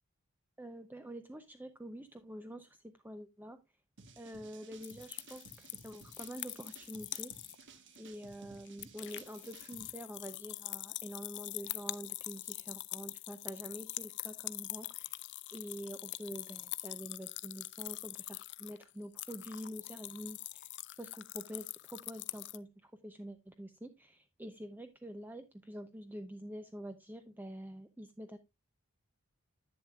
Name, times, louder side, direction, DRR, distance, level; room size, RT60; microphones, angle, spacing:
voice 1, 0.6-2.8 3.0-3.6 4.2-7.5 8.0-15.2 15.5-20.7 21.0-28.4, equal, 10° right, 8 dB, 0.6 m, -47 dB
sound 1, 4.0-9.9, right 4 dB, 55° right, 1.3 m, -57 dB
sound 2, 4.8-7.6 7.9-8.0 8.3-22.6, left 17 dB, 50° left, 0.5 m, -44 dB
10.5 x 9.1 x 2.3 m, 0.22 s
head